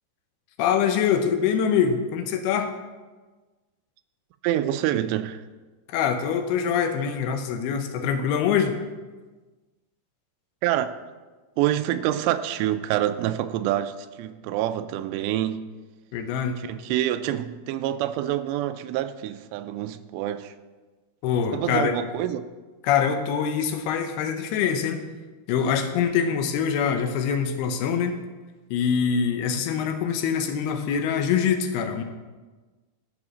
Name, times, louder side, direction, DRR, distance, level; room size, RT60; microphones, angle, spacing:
voice 1, 0.6-2.7 5.9-8.8 16.1-16.6 21.2-22.0 22.8-25.0 25.5-28.2 28.7-32.0, left 7 dB, 75° left, 5 dB, 2.6 m, -24 dB
voice 2, 4.4-5.4 10.6-10.9 11.6-15.7 16.6-20.5 21.5-22.5, right 12 dB, 85° right, 10 dB, 2.7 m, -26 dB
13.0 x 4.9 x 6.2 m, 1.3 s
omnidirectional pair, 4.9 m